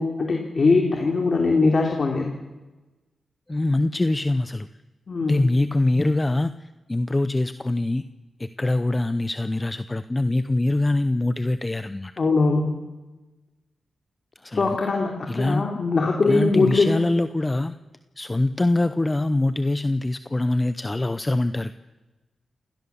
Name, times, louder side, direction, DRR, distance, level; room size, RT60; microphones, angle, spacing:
voice 1, 0.0-2.3 5.1-5.4 12.2-12.7 14.5-16.9, left 3 dB, 50° left, 2 dB, 3.2 m, -21 dB
voice 2, 3.5-4.7 5.3-8.1 8.4-12.1 14.4-14.8 15.3-15.7 16.3-17.7 18.2-21.7, left 2 dB, 25° left, 12 dB, 0.8 m, -24 dB
27.5 x 18.0 x 7.2 m, 1.1 s
cardioid pair, 70°, 0 cm